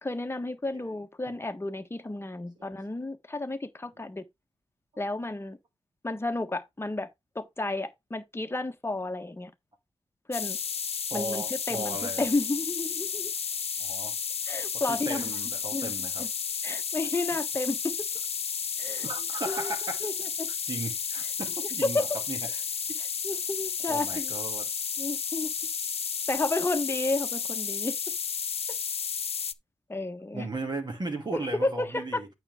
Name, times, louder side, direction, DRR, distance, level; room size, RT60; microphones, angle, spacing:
voice 1, 0.0-4.2 5.0-5.6 6.0-7.1 7.3-9.5 10.3-10.6 11.1-13.3 14.5-15.2 15.7-16.3 16.6-17.9 18.8-19.1 19.5-19.7 20.0-20.1 20.4-20.5 21.8-22.0 23.2-24.3 25.0-25.5 26.3-27.9 29.9-30.5 31.3-32.2, left 2 dB, 20° left, 1.3 m, -32 dB
sound 1, 10.3-29.5, left 6 dB, 60° left, 0.6 m, -32 dB
voice 2, 11.1-12.3 13.8-14.2 14.9-16.3 19.0-20.1 20.7-22.6 23.9-24.7 30.3-32.3, right 2 dB, 40° right, 2.4 m, -36 dB
8.8 x 5.9 x 3.6 m
wide cardioid pair, 90°, 11 cm